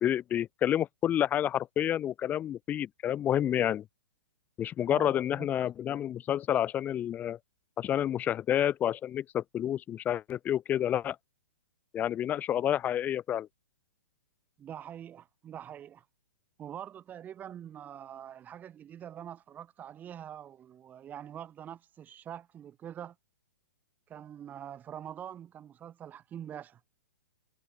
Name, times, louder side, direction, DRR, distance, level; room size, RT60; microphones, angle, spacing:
voice 1, 0.0-3.8 4.6-7.4 7.8-11.2 11.9-13.5, left 11 dB, 20° left, 0.9 m, -29 dB
voice 2, 4.9-5.5 14.6-16.1 16.6-23.2 24.1-26.8, right 10 dB, 20° right, 6.9 m, -44 dB
figure-of-eight pair, 120°, 9 cm